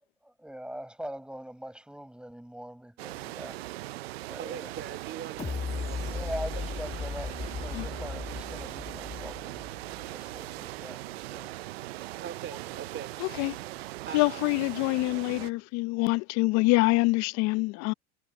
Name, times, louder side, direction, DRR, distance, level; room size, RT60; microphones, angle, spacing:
voice 1, 0.2-3.6 4.3-4.7 6.0-11.6, right 1 dB, 5° right, 6.8 m, -42 dB
sound 1, 3.0-15.5, right 18 dB, 85° right, 0.6 m, -40 dB
voice 2, 4.4-6.6 12.2-13.1 14.0-14.7, right 9 dB, 40° right, 3.0 m, -42 dB
sound 2, 5.4-10.3 10.7-10.8, left 5 dB, 20° left, 1.2 m, -37 dB
voice 3, 13.2-13.6 14.1-17.9, left 24 dB, 60° left, 0.7 m, -25 dB
hypercardioid pair, 90°, 30 cm